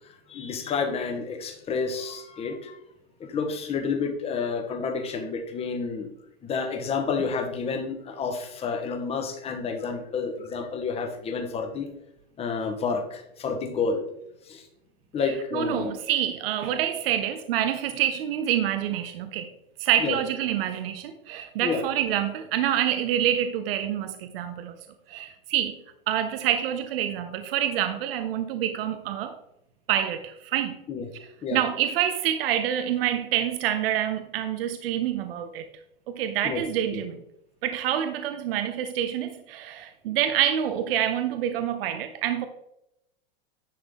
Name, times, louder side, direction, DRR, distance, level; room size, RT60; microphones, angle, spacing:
voice 1, 0.3-2.7 3.3-6.1 6.4-11.9 12.4-14.0 14.5-14.6 15.1-15.9 20.0-20.2 21.6-21.8 30.9-31.0 31.4-31.6 36.4-36.6 36.9-37.0, left 5 dB, 20° left, 5 dB, 1.0 m, -29 dB
voice 2, 15.2-19.5 19.8-24.7 25.1-25.8 26.1-29.4 29.9-30.8 31.5-35.7 36.1-37.2 37.6-42.5, right 10 dB, 70° right, 9 dB, 0.7 m, -27 dB
10.0 x 3.7 x 3.6 m, 0.83 s
supercardioid pair, 140°, 31 cm